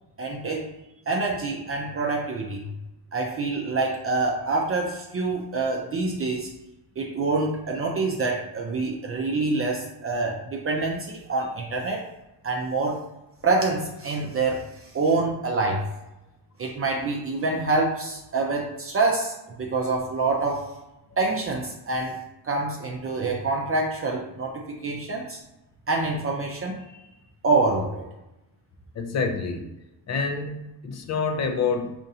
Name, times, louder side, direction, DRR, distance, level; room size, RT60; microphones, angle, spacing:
voice 1, 0.2-0.7 1.1-2.7 3.1-6.5 7.0-12.1 12.4-13.0 13.4-14.7 14.9-15.8 16.6-20.6 21.2-22.2 22.4-25.4 25.9-27.0 27.4-28.1, right 3 dB, 35° right, 0 dB, 0.5 m, -26 dB
voice 2, 28.9-29.7 30.1-31.9, left 5 dB, 40° left, 6 dB, 0.5 m, -27 dB
5.2 x 2.5 x 2.7 m, 0.95 s
cardioid pair, 145°, 40 cm